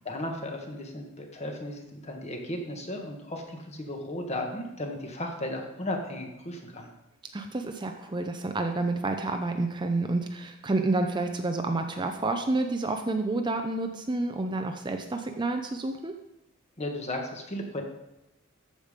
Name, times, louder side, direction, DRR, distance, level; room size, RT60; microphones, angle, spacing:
voice 1, 0.0-6.9 16.8-17.8, left 1 dB, 30° left, 2 dB, 1.4 m, -35 dB
voice 2, 7.3-16.1, right 2 dB, 20° right, 5 dB, 0.5 m, -29 dB
13.5 x 5.2 x 5.1 m, 0.93 s
head